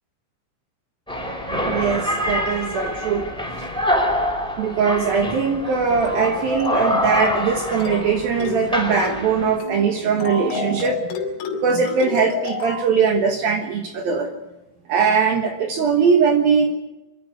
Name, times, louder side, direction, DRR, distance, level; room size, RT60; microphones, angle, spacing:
sound 1, 1.1-9.6, left 1 dB, ahead, 3.5 m, -25 dB
voice 1, 1.6-3.3 4.6-11.2 11.5-14.3 14.9-16.7, right 6 dB, 70° right, 4 dB, 2.4 m, -20 dB
sound 2, 6.0-6.3 6.6-6.9 7.2-7.5 7.8-8.1 8.4-8.7 9.0-9.3 9.6-9.8 10.2-12.9, left 4 dB, 75° left, 5.1 m, -30 dB
24.5 x 12.5 x 9.4 m, 0.98 s
omnidirectional pair, 5.9 m